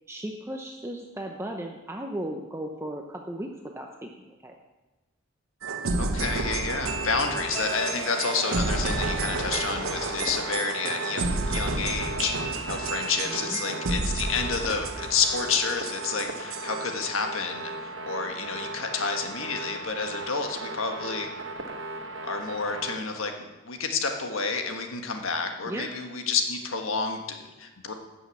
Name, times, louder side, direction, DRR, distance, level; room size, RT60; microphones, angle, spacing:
voice 1, 0.1-4.1 4.4-4.6 13.3-13.6 25.7-25.9, right 1 dB, 10° right, 2 dB, 0.7 m, -36 dB
sound 1, 5.6-17.0, right 3 dB, 80° right, 0.9 m, -31 dB
voice 2, 5.9-21.3 22.2-27.9, left 5 dB, 75° left, 4 dB, 1.5 m, -30 dB
sound 2, 6.2-23.0, right 2 dB, 60° right, 1.2 m, -37 dB
sound 3, 7.6-16.6, left 1 dB, 5° left, 1.5 m, -43 dB
11.5 x 6.3 x 8.3 m, 1.1 s
head